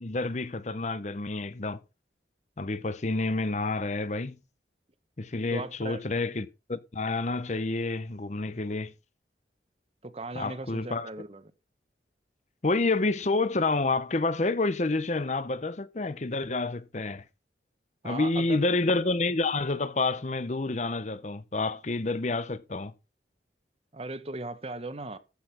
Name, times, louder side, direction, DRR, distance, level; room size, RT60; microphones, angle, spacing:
voice 1, 0.0-1.8 2.6-4.4 5.2-8.9 10.3-11.1 12.6-17.2 18.0-22.9, left 3 dB, 40° left, 0.8 m, -29 dB
voice 2, 5.5-6.0 10.0-11.4 18.0-18.6 23.9-25.2, right 2 dB, 35° right, 1.0 m, -38 dB
14.5 x 6.1 x 6.0 m
head